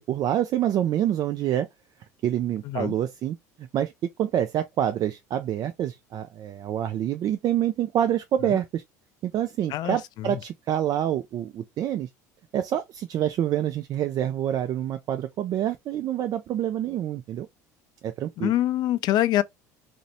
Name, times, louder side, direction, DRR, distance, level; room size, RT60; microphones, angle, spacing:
voice 1, 0.1-1.7 2.2-3.9 4.2-8.8 9.2-12.1 12.5-17.5 18.0-18.5, right 11 dB, 45° right, 0.3 m, -27 dB
voice 2, 9.7-10.4 18.4-19.4, left 14 dB, 50° left, 0.3 m, -25 dB
2.6 x 2.0 x 2.7 m
hypercardioid pair, 80°, 9 cm